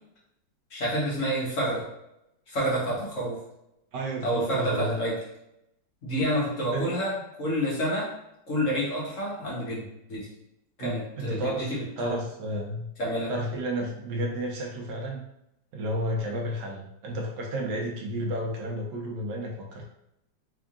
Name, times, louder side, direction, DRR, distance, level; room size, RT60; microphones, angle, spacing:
voice 1, 0.7-1.8 2.5-3.4 4.2-5.2 6.0-8.1 8.5-10.3 10.8-12.2 13.0-13.3, equal, 50° left, -5 dB, 1.2 m, -28 dB
voice 2, 3.9-5.0 6.7-6.9 10.8-12.9 13.3-15.2 15.7-19.8, right 1 dB, 75° right, 0 dB, 1.3 m, -32 dB
3.6 x 3.4 x 2.4 m, 0.83 s
omnidirectional pair, 2.0 m